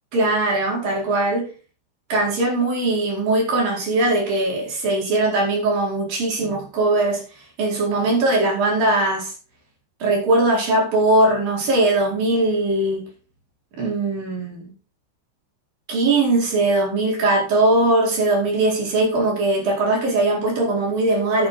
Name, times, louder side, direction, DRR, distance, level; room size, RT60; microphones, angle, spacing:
voice 1, 0.1-1.5 2.1-7.2 7.6-9.3 10.0-13.1 13.8-14.7 15.9-21.5, right 2 dB, 55° right, -2 dB, 6.0 m, -20 dB
12.0 x 8.6 x 4.0 m, 0.35 s
omnidirectional pair, 5.0 m